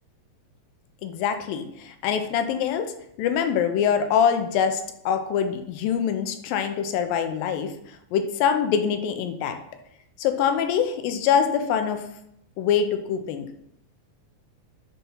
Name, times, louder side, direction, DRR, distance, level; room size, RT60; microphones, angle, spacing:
voice 1, 1.0-2.9 3.2-7.7 8.1-9.6 10.2-12.0 12.6-13.5, left 7 dB, 85° left, 7 dB, 2.5 m, -24 dB
11.5 x 4.2 x 5.5 m, 0.76 s
omnidirectional pair, 4.1 m